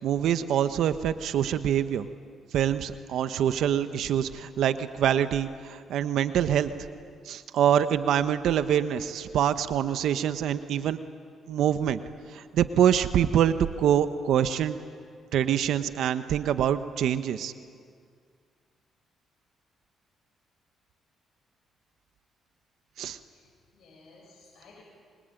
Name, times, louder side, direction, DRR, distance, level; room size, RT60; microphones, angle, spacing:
voice 1, 0.0-2.1 2.5-6.7 7.2-11.0 11.5-12.0 12.3-14.8 15.3-17.5 23.0-23.2, right 9 dB, 75° right, 11 dB, 1.1 m, -25 dB
voice 2, 23.2-24.8, left 3 dB, 60° left, -3 dB, 7.5 m, -56 dB
25.0 x 24.0 x 9.1 m, 2.2 s
cardioid pair, 90°, 0 cm